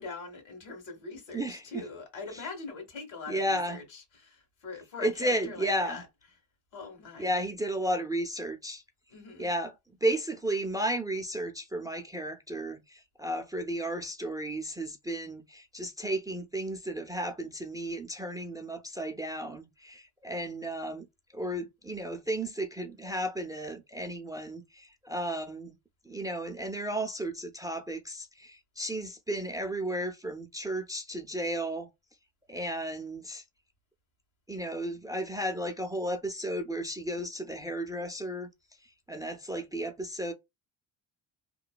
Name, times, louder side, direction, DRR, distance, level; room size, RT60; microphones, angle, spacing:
voice 1, 0.0-6.1 6.7-7.3 9.1-9.5, left 4 dB, 80° left, 1.6 m, -42 dB
voice 2, 1.3-1.6 2.3-2.4 3.3-3.8 5.0-6.0 7.2-8.8 9.4-9.7 10.0-21.1 21.3-25.8 26.1-31.9 32.5-33.4 34.5-38.5 38.8-40.3, right 1 dB, 10° right, 0.4 m, -33 dB
3.0 x 2.1 x 2.3 m
supercardioid pair, 80°, 45 cm